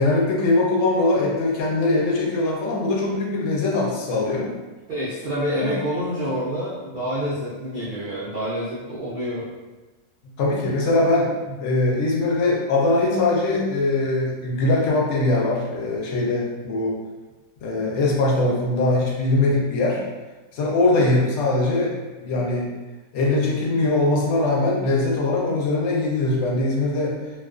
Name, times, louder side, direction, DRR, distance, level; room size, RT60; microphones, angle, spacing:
voice 1, 0.0-4.5 5.6-5.7 10.4-11.3 11.6-17.0 17.6-20.0 20.5-21.9 22.2-22.7 23.1-27.2, left 2 dB, 65° left, -3 dB, 0.8 m, -21 dB
voice 2, 4.9-9.5 11.5-11.6, equal, 85° right, -9 dB, 0.4 m, -27 dB
2.3 x 2.3 x 2.4 m, 1.2 s
omnidirectional pair, 1.6 m